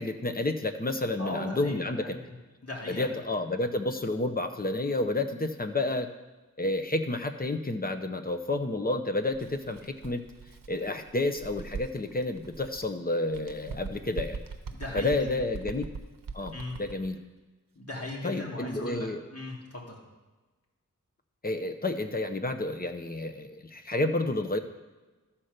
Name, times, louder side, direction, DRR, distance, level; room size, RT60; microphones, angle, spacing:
voice 1, 0.0-2.2 2.9-6.1 6.6-10.2 10.7-14.4 14.9-15.8 16.3-16.5 16.8-17.2 18.2-19.2 21.4-24.6, left 2 dB, 30° left, 8 dB, 0.8 m, -30 dB
voice 2, 1.2-2.4 2.6-3.1 14.7-15.5 16.5-16.7 17.7-20.0, left 2 dB, 50° left, -2 dB, 2.4 m, -38 dB
Bird, 9.3-12.9 13.3-17.1, right 4 dB, 85° right, 0.8 m, -42 dB
13.0 x 4.4 x 6.6 m, 1.2 s
wide cardioid pair, 80°, 32 cm